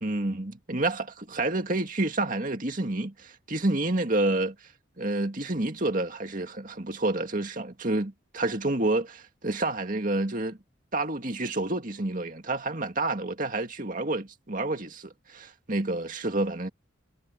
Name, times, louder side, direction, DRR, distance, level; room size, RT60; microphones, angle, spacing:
voice 1, 0.0-4.6 5.0-10.6 10.9-16.7, right 2 dB, 40° right, 2.2 m, -29 dB
head